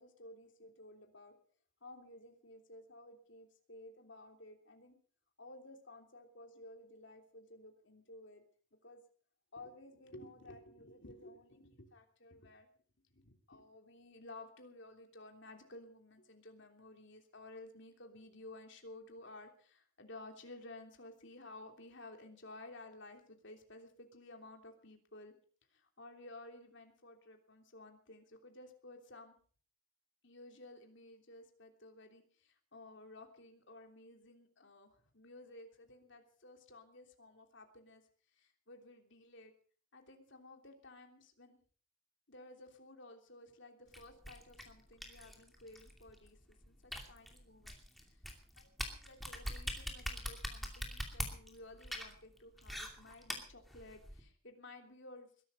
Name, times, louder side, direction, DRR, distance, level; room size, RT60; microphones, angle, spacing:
voice 1, 0.0-1.4 1.8-5.0 5.4-8.4 8.8-9.0 9.5-12.7 13.1-25.3 25.7-29.3 30.2-38.0 38.3-39.5 39.9-41.6 42.3-46.4 46.6-47.8 48.0-48.2 48.5-55.3, left 2 dB, 55° left, 4 dB, 3.2 m, -55 dB
sound 1, 43.9-54.2, equal, ahead, 2.6 m, -44 dB
21.5 x 12.0 x 5.3 m, 0.43 s
head